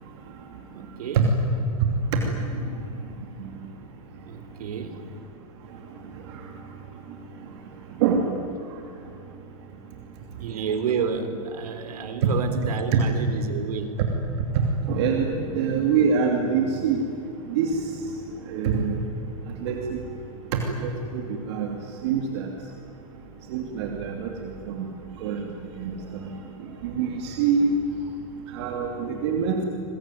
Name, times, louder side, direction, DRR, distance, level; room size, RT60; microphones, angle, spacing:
voice 1, 0.7-1.3 4.2-5.0 6.7-6.8 10.3-14.0, right 6 dB, 85° right, 8 dB, 4.0 m, -30 dB
voice 2, 14.5-17.0 17.5-17.7 18.5-19.0 19.6-20.0 20.5-21.7 22.0-22.5 23.5-24.9 25.2-25.5 25.7-26.0 26.2-26.3 26.8-27.7 28.5-29.6, right 6 dB, 45° right, 2 dB, 2.9 m, -25 dB
27.5 x 22.0 x 9.4 m, 2.8 s
supercardioid pair, 170°, 19 cm